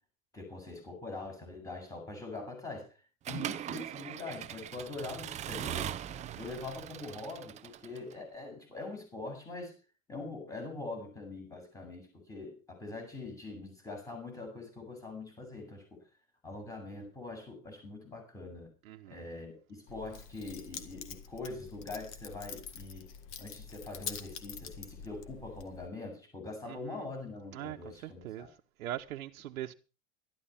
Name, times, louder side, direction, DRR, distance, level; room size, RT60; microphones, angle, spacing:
voice 1, 0.3-2.9 3.3-6.0 6.4-9.7 10.1-16.0 16.4-18.7 19.1-23.1 23.4-28.5, left 3 dB, 10° left, 7.9 m, -43 dB
Accelerating revving vroom / Mechanisms, 3.3-8.2, right 11 dB, 15° right, 0.7 m, -40 dB
voice 2, 18.8-19.2 26.7-27.1 27.5-27.8 28.0-28.5 28.8-29.7, right 13 dB, 75° right, 1.3 m, -41 dB
Keys jangling, 19.9-25.9, left 7 dB, 30° left, 1.8 m, -46 dB
13.0 x 11.5 x 5.8 m
supercardioid pair, 150°, 41 cm